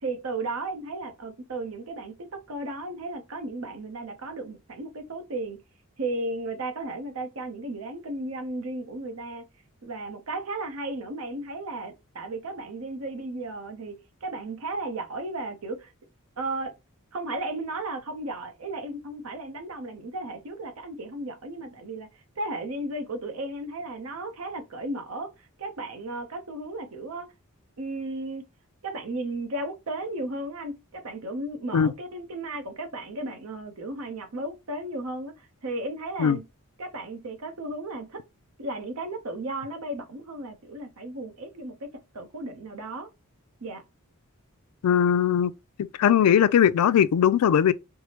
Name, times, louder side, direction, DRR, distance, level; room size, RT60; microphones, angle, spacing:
voice 1, 0.0-5.6 6.0-9.4 9.8-15.9 16.4-16.7 17.1-22.1 22.4-27.3 27.8-28.4 28.8-36.4 36.8-38.2 38.6-41.9 42.1-43.1 43.6-43.8, right 2 dB, 75° right, 0.7 m, -34 dB
voice 2, 44.8-45.5 46.0-47.7, left 9 dB, 80° left, 0.3 m, -19 dB
4.5 x 2.0 x 2.8 m
head